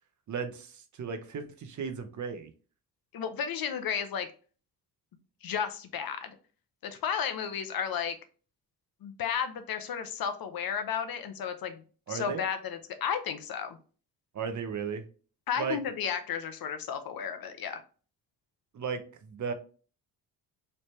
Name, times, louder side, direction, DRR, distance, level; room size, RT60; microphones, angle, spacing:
voice 1, 0.3-2.5 12.1-12.4 14.3-15.0 15.6-15.8 18.7-19.5, right 6 dB, 45° right, 7 dB, 0.7 m, -35 dB
voice 2, 3.1-4.3 5.4-6.3 6.8-8.2 9.0-11.8 12.1-13.8 15.5-17.8, left 7 dB, 55° left, 9 dB, 0.7 m, -33 dB
3.2 x 2.7 x 3.0 m, 0.38 s
supercardioid pair, 55°, 43 cm